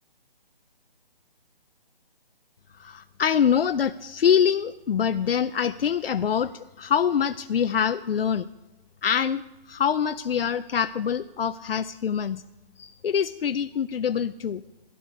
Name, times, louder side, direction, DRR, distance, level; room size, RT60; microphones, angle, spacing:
voice 1, 2.8-8.5 9.0-9.4 9.7-12.4 12.8-14.6, left 8 dB, 80° left, 11 dB, 0.5 m, -25 dB
16.5 x 10.0 x 4.8 m, 1.1 s
hypercardioid pair, 170°, 29 cm